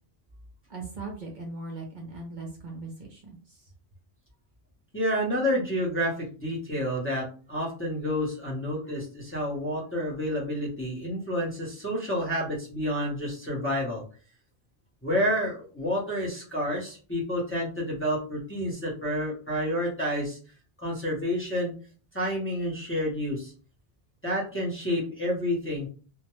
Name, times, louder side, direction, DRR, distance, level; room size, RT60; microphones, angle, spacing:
voice 1, 0.7-3.4, right 3 dB, 55° right, 0 dB, 0.7 m, -39 dB
voice 2, 4.9-14.0 15.0-20.4 20.8-21.7 22.1-23.5 24.2-25.9, equal, 15° left, -5 dB, 0.7 m, -29 dB
2.3 x 2.1 x 2.9 m, 0.39 s
omnidirectional pair, 1.0 m